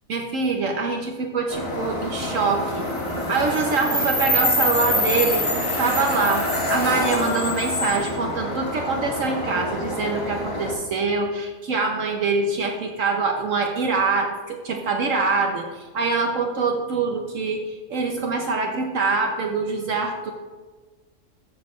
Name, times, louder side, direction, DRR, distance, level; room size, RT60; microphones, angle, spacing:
voice 1, 0.1-5.4 5.8-20.3, right 4 dB, 65° right, 2 dB, 1.2 m, -24 dB
sound 1, 1.5-10.7, left 1 dB, 20° left, 2.0 m, -25 dB
14.5 x 6.4 x 3.2 m, 1.3 s
omnidirectional pair, 1.5 m